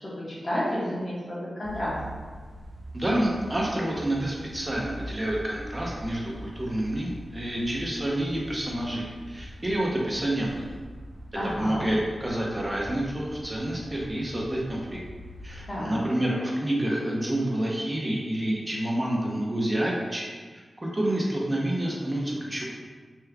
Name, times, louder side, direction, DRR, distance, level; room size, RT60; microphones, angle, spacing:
voice 1, 0.0-2.0 11.3-11.8 15.7-15.9, equal, 35° left, -9 dB, 1.2 m, -31 dB
sound 1, 1.6-15.7, equal, 70° right, 0.5 m, -43 dB
voice 2, 2.9-10.6 11.6-15.0 15.4-22.6, right 1 dB, 25° right, -3 dB, 0.7 m, -28 dB
3.4 x 3.0 x 2.3 m, 1.4 s
cardioid pair, 50°, 0 cm